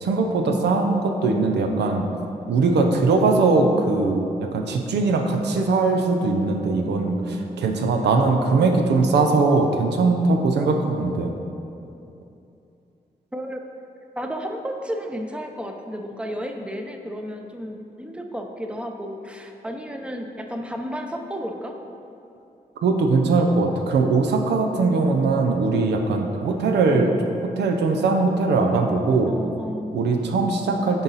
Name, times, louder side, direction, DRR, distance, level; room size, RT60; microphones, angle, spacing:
voice 1, 0.0-2.1 2.5-11.3 22.8-27.1 27.4-29.3 29.9-31.0, right 3 dB, 90° right, 3 dB, 0.5 m, -20 dB
voice 2, 13.3-13.6 14.2-21.8 24.8-25.1 29.3-29.9, equal, 5° right, 4 dB, 0.6 m, -32 dB
6.9 x 4.0 x 4.0 m, 2.7 s
cardioid pair, 50°, 17 cm